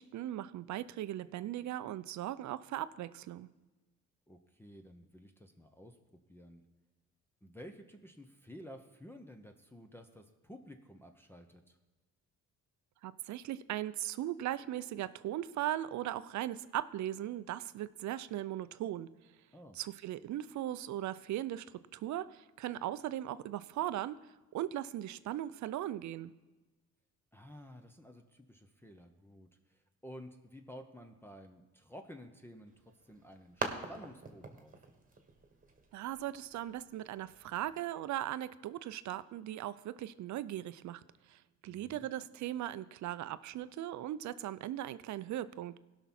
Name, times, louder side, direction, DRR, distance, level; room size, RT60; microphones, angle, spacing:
voice 1, 0.0-3.5 13.0-19.1 19.8-21.7 21.9-24.2 24.5-26.3 35.9-41.0 41.3-45.7, right 13 dB, 70° right, 15 dB, 0.5 m, -38 dB
voice 2, 4.3-6.0 6.3-6.6 7.4-11.8 19.5-19.8 27.3-34.9 41.7-42.1, equal, 5° left, 2 dB, 0.8 m, -52 dB
sound 1, 32.7-37.8, right 3 dB, 25° right, 1.5 m, -45 dB
16.5 x 6.0 x 4.3 m, 1.2 s
cardioid pair, 90°, 30 cm